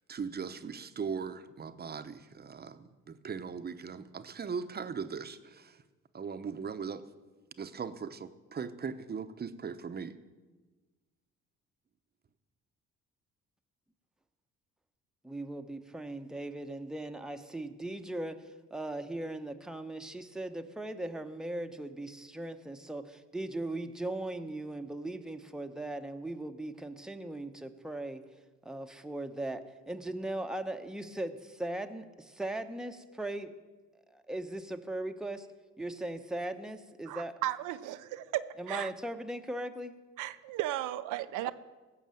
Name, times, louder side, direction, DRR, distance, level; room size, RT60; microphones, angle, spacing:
voice 1, 0.1-5.7 6.1-7.0 7.6-10.1, right 6 dB, 30° right, 11 dB, 0.8 m, -39 dB
voice 2, 15.2-28.2 28.6-33.6 34.1-35.5 35.8-37.3 38.6-39.9 41.4-41.5, right 1 dB, ahead, 6 dB, 0.8 m, -38 dB
voice 3, 37.1-38.9 40.2-41.5, right 14 dB, 90° right, 11 dB, 0.6 m, -35 dB
16.5 x 6.3 x 7.7 m, 1.3 s
cardioid pair, 90°, 30 cm